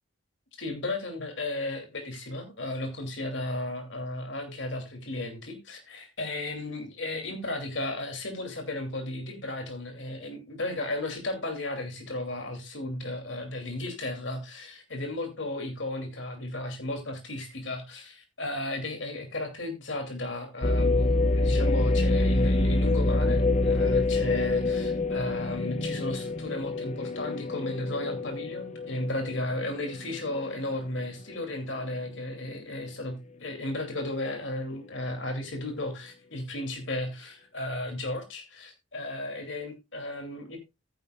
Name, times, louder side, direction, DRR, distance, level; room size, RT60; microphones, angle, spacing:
voice 1, 0.6-40.6, left 2 dB, 75° left, 2.7 m, -34 dB
sound 1, 20.6-30.6 31.0-31.1 31.8-32.2, left 2 dB, 35° left, 0.7 m, -26 dB
13.5 x 9.9 x 2.3 m
head